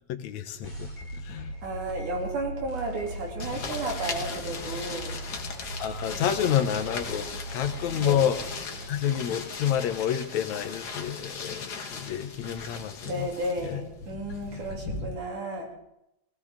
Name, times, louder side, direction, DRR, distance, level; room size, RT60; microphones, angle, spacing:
voice 1, 0.1-1.5 5.8-8.4 8.9-13.3 13.6-13.8, left 9 dB, 75° left, 7 dB, 2.2 m, -29 dB
sound 1, 0.6-9.6, right 2 dB, 10° right, 2.3 m, -39 dB
voice 2, 1.6-5.2 8.0-8.3 13.0-15.7, right 1 dB, 85° right, 0 dB, 4.4 m, -33 dB
sound 2, 3.4-15.1, left 4 dB, 45° left, 1.4 m, -38 dB
19.5 x 16.5 x 3.6 m, 0.85 s
omnidirectional pair, 3.4 m